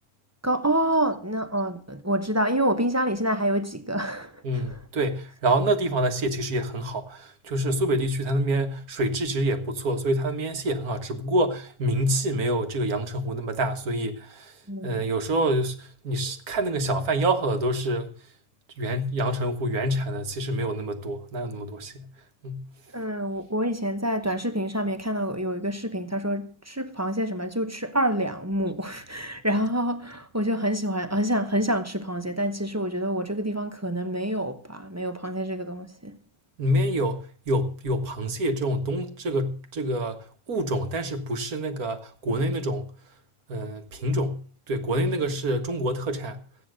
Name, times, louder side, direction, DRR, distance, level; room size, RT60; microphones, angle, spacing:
voice 1, 0.4-4.6 14.7-15.0 22.9-36.2, right 1 dB, 15° right, 0.9 m, -27 dB
voice 2, 4.4-14.5 14.8-18.2 18.8-22.1 22.4-22.6 36.6-42.9 43.5-44.4 44.7-46.4, right 1 dB, 80° right, 1.9 m, -27 dB
15.0 x 9.3 x 6.4 m
omnidirectional pair, 1.5 m